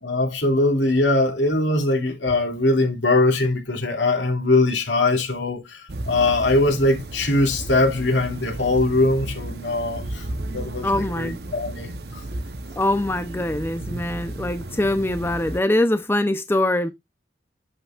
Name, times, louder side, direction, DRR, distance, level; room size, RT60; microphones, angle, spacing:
voice 1, 0.0-12.2, left 2 dB, 85° left, 2.4 m, -21 dB
sound 1, 5.9-15.6, right 1 dB, 60° right, 0.9 m, -34 dB
voice 2, 10.8-11.4 12.8-16.9, left 1 dB, 10° left, 0.6 m, -23 dB
8.6 x 7.9 x 2.4 m
head